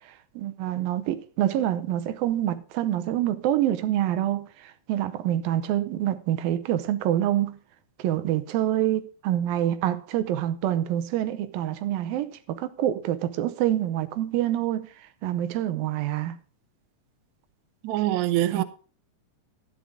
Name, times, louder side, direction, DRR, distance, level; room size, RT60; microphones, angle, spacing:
voice 1, 0.4-7.6 8.0-14.9 15.2-16.4 18.5-18.6, right 12 dB, 85° right, 2.6 m, -26 dB
voice 2, 17.8-18.6, right 14 dB, 70° right, 1.8 m, -24 dB
12.5 x 10.0 x 3.6 m
omnidirectional pair, 4.0 m